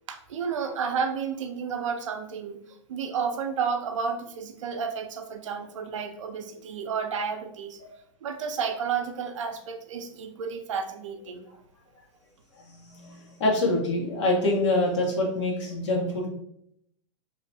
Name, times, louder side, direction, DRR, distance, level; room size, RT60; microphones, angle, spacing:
voice 1, 0.1-2.6 2.9-7.8 8.2-11.5, right 6 dB, 90° right, 6 dB, 0.4 m, -31 dB
voice 2, 12.6-16.3, left 2 dB, 70° left, -2 dB, 0.8 m, -26 dB
2.7 x 2.2 x 2.7 m, 0.73 s
hypercardioid pair, 135°, 16 cm